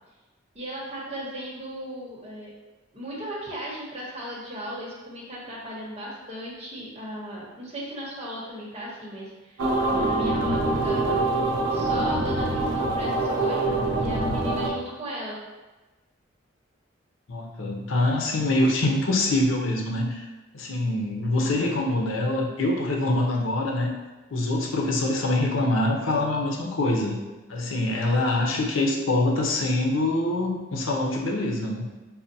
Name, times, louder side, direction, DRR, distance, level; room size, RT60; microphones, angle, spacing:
voice 1, 0.5-2.5 2.9-9.6 9.9-11.2 11.7-15.4 24.7-25.1, equal, 30° right, -5 dB, 1.0 m, -36 dB
sound 1, 9.6-14.7, right 2 dB, 80° right, 0.6 m, -24 dB
voice 2, 17.3-20.3 20.5-23.9 24.3-27.2 27.5-31.9, left 2 dB, 90° left, 0 dB, 0.6 m, -24 dB
5.4 x 2.2 x 2.7 m, 1.1 s
head